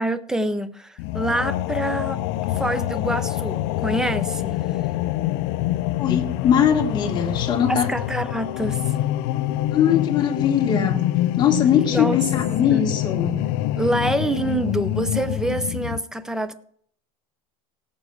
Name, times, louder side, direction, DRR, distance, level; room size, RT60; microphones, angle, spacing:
voice 1, 0.0-2.2 2.5-4.7 7.7-8.9 11.9-12.2 12.7-13.0 13.8-16.5, right 1 dB, 5° right, 0.5 m, -26 dB
sound 1, 1.0-16.0, left 14 dB, 50° left, 0.5 m, -25 dB
voice 2, 6.0-7.9 9.7-11.1 11.4-13.4, left 8 dB, 25° left, 1.8 m, -21 dB
17.5 x 7.1 x 4.8 m
supercardioid pair, 160°, 18 cm